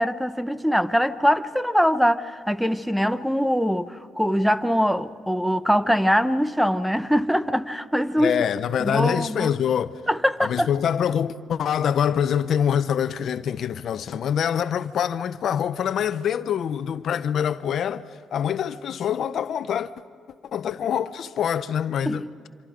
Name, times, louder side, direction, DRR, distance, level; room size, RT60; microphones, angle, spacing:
voice 1, 0.0-8.3 8.8-9.5 10.1-10.7 22.1-22.3, equal, ahead, 0.7 m, -22 dB
voice 2, 8.2-10.0 10.4-18.0 18.3-19.9 20.5-22.3, left 8 dB, 65° left, 0.7 m, -25 dB
26.0 x 26.0 x 5.0 m
cardioid pair, 90°, 0 cm